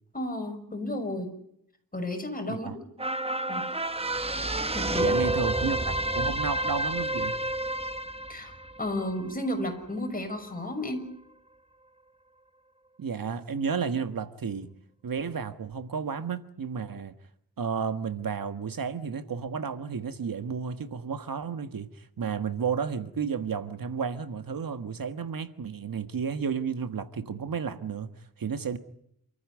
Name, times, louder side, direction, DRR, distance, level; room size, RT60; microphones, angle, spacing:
voice 1, 0.1-1.3 1.9-2.8 3.5-3.6 4.7-5.1 8.3-8.5 8.8-11.1, left 1 dB, 25° left, 6.3 m, -32 dB
voice 2, 2.5-2.8 5.0-7.4 13.0-14.7 15.0-17.1 17.6-28.8, right 6 dB, 70° right, 1.5 m, -32 dB
sound 1, 3.0-9.6 10.1-10.2, right 1 dB, 15° right, 1.0 m, -29 dB
28.5 x 14.5 x 9.8 m
wide cardioid pair, 110°, 35 cm